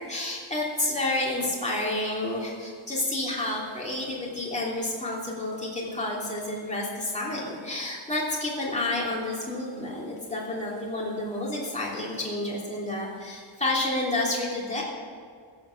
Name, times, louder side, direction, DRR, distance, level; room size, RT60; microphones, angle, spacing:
voice 1, 0.0-14.8, left 2 dB, 15° left, -5 dB, 3.0 m, -30 dB
14.5 x 7.6 x 7.1 m, 2.1 s
wide cardioid pair, 180°, 46 cm